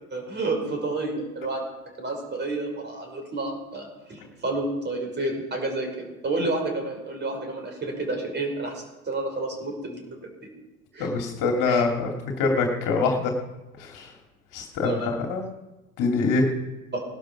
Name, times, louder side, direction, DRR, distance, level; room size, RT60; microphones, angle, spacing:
voice 1, 0.0-1.6 2.0-10.2 10.9-11.1 11.7-11.8 14.8-15.1 16.9-17.0, right 2 dB, 25° right, 2 dB, 5.8 m, -30 dB
voice 2, 11.0-12.1 12.4-13.3 13.8-14.1 14.5-15.4 16.0-16.4, left 4 dB, 45° left, 2 dB, 2.8 m, -24 dB
18.5 x 12.0 x 6.0 m, 1.0 s
figure-of-eight pair, 80°, 43 cm